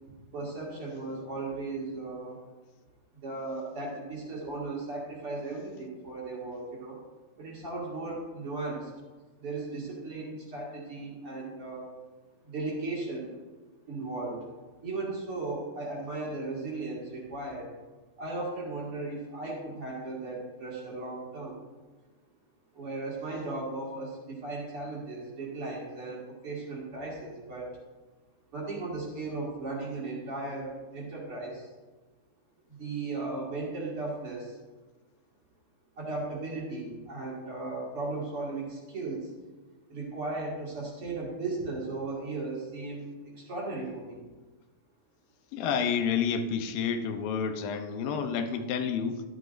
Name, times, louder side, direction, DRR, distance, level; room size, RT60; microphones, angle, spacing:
voice 1, 0.1-2.4 3.2-7.0 7.4-8.9 9.4-11.9 12.4-13.4 13.9-14.4 14.8-17.7 18.2-21.6 22.7-27.7 28.5-31.7 32.7-34.6 36.0-39.3 39.9-44.2, right 3 dB, 45° right, -4 dB, 2.5 m, -36 dB
voice 2, 45.5-49.2, left 6 dB, 80° left, 6 dB, 2.5 m, -29 dB
13.0 x 11.5 x 2.5 m, 1.3 s
omnidirectional pair, 4.3 m